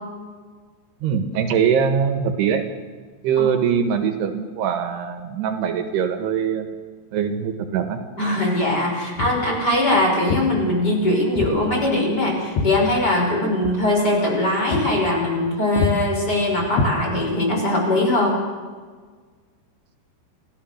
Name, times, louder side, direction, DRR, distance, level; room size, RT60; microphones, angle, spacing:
voice 1, 1.0-2.6 3.2-6.7 7.1-8.0, right 7 dB, 75° right, 6 dB, 3.4 m, -22 dB
voice 2, 8.2-18.4, left 1 dB, 25° left, -1 dB, 5.7 m, -21 dB
Walk footsteps, 9.2-9.5 10.3-10.5 11.4-11.6 11.9-13.3 13.6-13.8 14.2-14.4 14.7-14.9 15.2-15.5 15.8-16.0 16.7-17.4, left 4 dB, 80° left, 4.0 m, -25 dB
28.5 x 16.0 x 6.5 m, 1.5 s
omnidirectional pair, 4.9 m